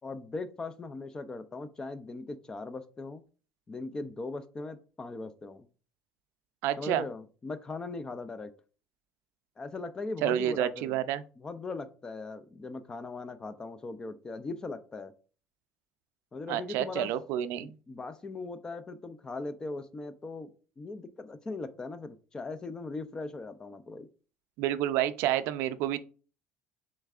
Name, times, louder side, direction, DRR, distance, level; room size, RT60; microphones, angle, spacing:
voice 1, 0.0-3.2 3.7-5.7 6.8-8.5 9.6-10.9 11.4-15.1 16.3-17.1 17.6-20.5 20.8-24.1, left 3 dB, 15° left, 0.4 m, -39 dB
voice 2, 6.6-7.1 10.2-11.2 16.5-17.8 24.6-26.0, right 11 dB, 65° right, 0.4 m, -29 dB
6.9 x 3.2 x 2.4 m
cardioid pair, 170°, 4 cm